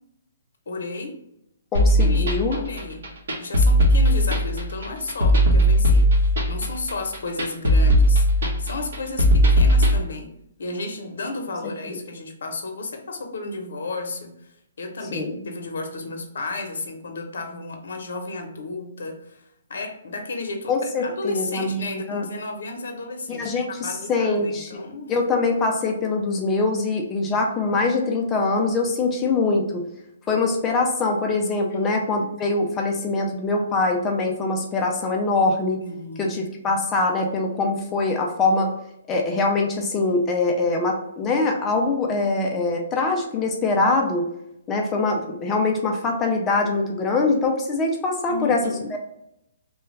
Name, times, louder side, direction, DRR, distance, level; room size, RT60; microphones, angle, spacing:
voice 1, 0.7-1.2 2.0-3.1 3.4-10.3 10.6-14.5 14.8-19.4 19.7-25.2 27.2-27.4 31.7-32.3 35.8-36.4 48.3-48.9, left 3 dB, 65° left, 4 dB, 0.8 m, -33 dB
voice 2, 1.7-2.6 11.9-12.0 15.1-15.5 20.7-22.3 23.3-24.8 25.1-29.9 30.3-35.8 36.2-38.7 39.1-44.3 44.7-48.6 48.9-49.0, left 3 dB, 10° left, 1 dB, 0.4 m, -23 dB
sound 1, 1.7-10.0, equal, 60° right, 1.1 m, -18 dB
3.2 x 2.3 x 3.1 m, 0.80 s
hypercardioid pair, 175°, 0 cm